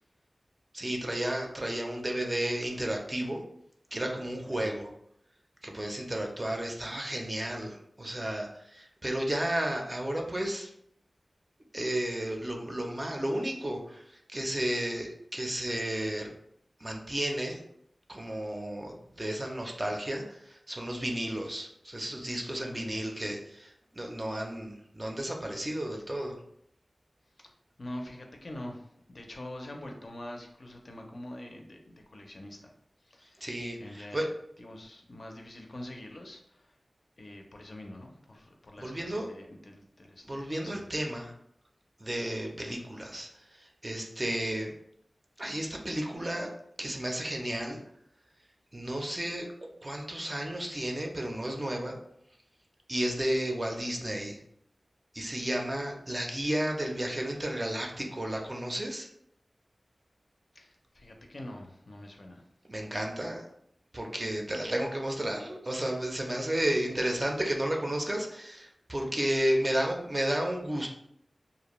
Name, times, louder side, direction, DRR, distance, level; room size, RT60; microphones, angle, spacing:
voice 1, 0.7-3.4 3.9-4.9 5.6-10.7 11.7-16.3 16.8-17.6 18.1-26.4 33.4-34.3 38.8-39.3 40.3-41.3 42.0-44.7 45.4-46.5 46.8-47.8 48.7-49.5 49.8-52.0 52.9-54.4 55.1-59.1 62.7-63.4 63.9-70.9, right 1 dB, 30° right, 1 dB, 0.4 m, -32 dB
voice 2, 27.8-32.7 33.0-33.5 33.8-34.2 34.6-36.8 37.2-40.9 60.5-62.4, left 1 dB, 60° left, 2 dB, 0.4 m, -45 dB
2.4 x 2.1 x 2.9 m, 0.71 s
wide cardioid pair, 75°, 0 cm